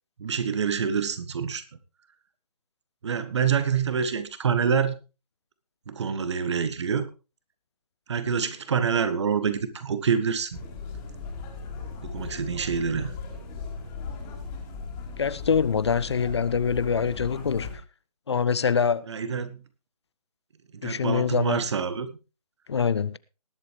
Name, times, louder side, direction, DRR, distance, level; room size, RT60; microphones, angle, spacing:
voice 1, 0.2-1.6 3.0-4.9 5.9-7.1 8.1-10.6 12.0-13.1 19.1-19.6 20.7-22.1, right 6 dB, 45° right, 1.4 m, -26 dB
sound 1, 10.5-17.8, left 4 dB, 20° left, 3.0 m, -37 dB
voice 2, 15.2-17.7 18.3-19.1 20.8-21.6 22.7-23.2, left 6 dB, 45° left, 0.5 m, -24 dB
19.5 x 8.1 x 3.3 m
figure-of-eight pair, 150°, 20 cm